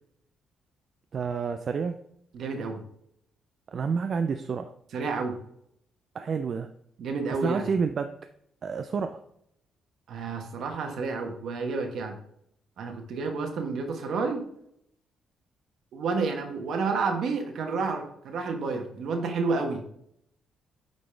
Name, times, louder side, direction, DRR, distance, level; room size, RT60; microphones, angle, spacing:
voice 1, 1.1-1.9 3.7-4.7 6.1-6.7 7.4-8.1 8.6-9.2, right 5 dB, 50° right, 7 dB, 0.4 m, -29 dB
voice 2, 2.3-2.8 4.9-5.4 7.0-7.7 10.1-12.2 12.8-14.4 15.9-19.8, right 4 dB, 70° right, 4 dB, 1.3 m, -30 dB
8.6 x 4.1 x 3.4 m, 0.73 s
cardioid pair, 90°, 0 cm